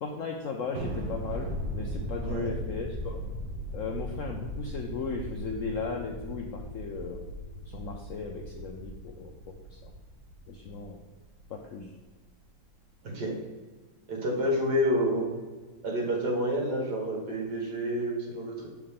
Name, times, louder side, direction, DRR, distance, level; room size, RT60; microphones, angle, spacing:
voice 1, 0.0-3.2 3.7-7.2 7.7-9.5 9.8-9.9 10.5-11.0 11.5-11.9, left 5 dB, 75° left, 2 dB, 0.7 m, -37 dB
Thunder, 0.8-11.4, right 1 dB, 85° right, 1.8 m, -38 dB
sound 1, 5.5-7.6, left 1 dB, 20° left, 0.5 m, -42 dB
voice 2, 14.1-15.3 15.8-18.7, equal, 60° right, -1 dB, 2.1 m, -28 dB
6.6 x 4.7 x 3.6 m, 1.3 s
omnidirectional pair, 2.0 m